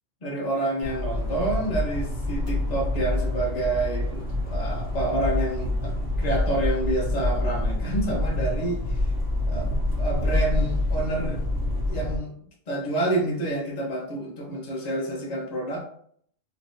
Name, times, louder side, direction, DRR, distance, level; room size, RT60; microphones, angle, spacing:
voice 1, 0.2-9.1 9.5-11.4 11.9-12.3 12.7-15.8, right 2 dB, 35° left, -1 dB, 0.8 m, -28 dB
sound 1, 0.8-12.2, left 1 dB, 30° right, 1.5 m, -27 dB
3.2 x 2.9 x 2.7 m, 0.63 s
omnidirectional pair, 1.3 m